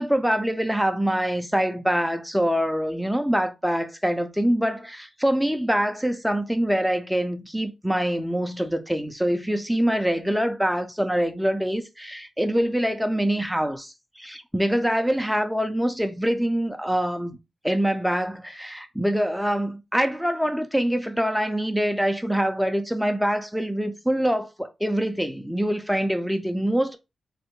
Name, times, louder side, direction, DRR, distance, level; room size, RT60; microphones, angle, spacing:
voice 1, 0.0-17.4 17.6-27.0, equal, ahead, 0.4 m, -24 dB
3.1 x 2.1 x 3.0 m
wide cardioid pair, 130°, 0 cm